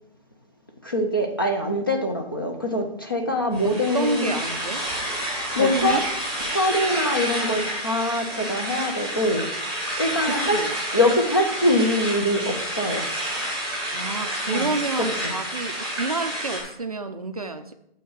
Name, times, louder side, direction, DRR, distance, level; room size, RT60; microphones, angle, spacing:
voice 1, 0.8-4.4 5.6-6.0 6.5-9.4 10.0-10.6 10.9-13.1 14.5-14.7 15.2-15.3, left 1 dB, 20° left, 3 dB, 0.5 m, -23 dB
sound 1, 3.5-16.6, right 1 dB, 5° left, 1.1 m, -29 dB
voice 2, 3.6-4.8 5.5-6.0 10.3-10.7 13.9-17.7, right 3 dB, 40° right, 8 dB, 0.5 m, -29 dB
7.4 x 5.7 x 4.7 m, 0.79 s
hypercardioid pair, 165°, 30 cm